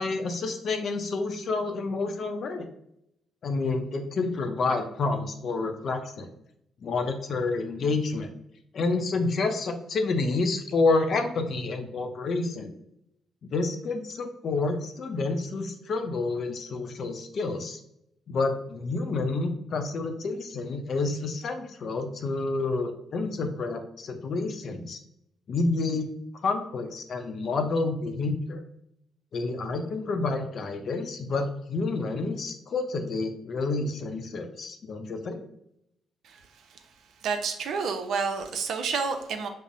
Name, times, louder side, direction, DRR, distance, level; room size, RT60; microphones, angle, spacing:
voice 1, 0.0-2.7 3.4-6.3 6.8-8.3 8.7-12.7 13.4-17.8 18.3-25.0 25.5-26.1 26.4-28.6 29.3-35.4, left 3 dB, 55° left, 6 dB, 0.5 m, -29 dB
voice 2, 37.2-39.5, right 5 dB, 70° right, 6 dB, 0.5 m, -29 dB
5.3 x 2.0 x 2.5 m, 0.78 s
cardioid pair, 90°, 0 cm